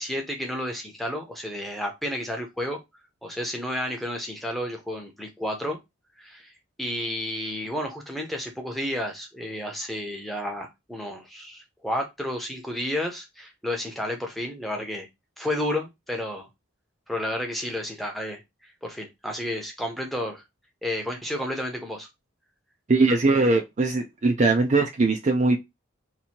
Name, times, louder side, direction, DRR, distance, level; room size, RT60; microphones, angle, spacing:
voice 1, 0.0-2.8 3.2-5.8 6.2-6.5 6.8-15.1 15.4-16.5 17.1-20.4 20.8-22.1, left 1 dB, ahead, 0.7 m, -31 dB
voice 2, 22.9-25.6, right 3 dB, 35° right, 0.4 m, -21 dB
2.9 x 2.6 x 4.2 m
head